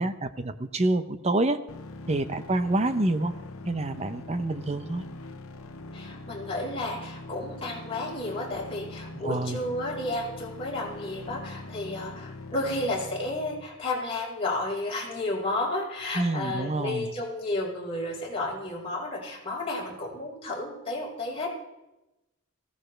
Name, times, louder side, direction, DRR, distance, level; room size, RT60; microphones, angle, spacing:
voice 1, 0.0-1.6 2.1-3.3 3.6-5.0 9.2-9.6 16.1-17.1, right 2 dB, 30° right, 10 dB, 0.8 m, -27 dB
sound 1, 1.7-13.7, left 2 dB, 85° left, 1.1 m, -42 dB
voice 2, 5.9-21.5, left 2 dB, 25° left, -4 dB, 4.9 m, -32 dB
19.0 x 16.0 x 3.4 m, 0.96 s
head